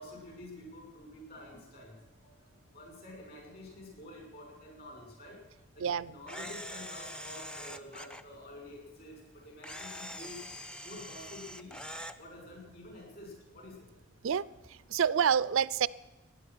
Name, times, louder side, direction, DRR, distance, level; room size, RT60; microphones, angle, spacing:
voice 1, 0.0-5.4 5.7-10.5 10.8-11.8 12.2-13.9, left 1 dB, 50° left, 0 dB, 6.1 m, -49 dB
voice 2, 5.8-6.1 14.2-14.4 14.9-15.9, right 7 dB, 80° right, 18 dB, 0.4 m, -27 dB
Camera, 6.3-8.2 9.6-12.2, equal, 5° left, 0.5 m, -44 dB
15.0 x 10.5 x 6.2 m, 1.1 s
head